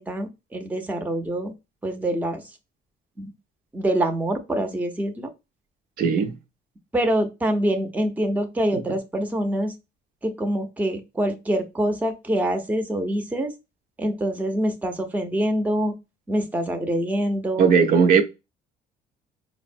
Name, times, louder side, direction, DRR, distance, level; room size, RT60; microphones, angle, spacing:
voice 1, 0.0-1.5 1.8-2.4 3.2-3.3 3.7-5.3 6.9-9.7 10.2-13.5 14.0-15.9 16.3-17.7, right 1 dB, 10° right, 0.6 m, -25 dB
voice 2, 6.0-6.4 17.6-18.2, right 6 dB, 60° right, 0.6 m, -17 dB
4.8 x 2.1 x 2.6 m
cardioid pair, 110°, 17 cm